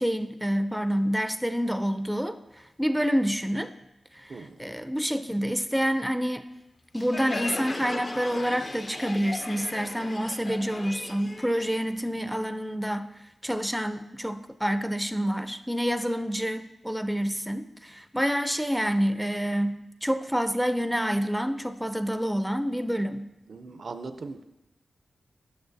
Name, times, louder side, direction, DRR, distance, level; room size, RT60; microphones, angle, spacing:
voice 1, 0.0-3.7 4.1-6.4 6.9-13.1 13.4-23.3, equal, ahead, 10 dB, 0.4 m, -28 dB
Crowd, 6.9-12.4, left 2 dB, 45° left, 0.5 m, -37 dB
voice 2, 23.5-24.4, right 3 dB, 65° right, 8 dB, 0.4 m, -39 dB
8.6 x 6.2 x 2.6 m, 0.93 s
cardioid pair, 60°, 0 cm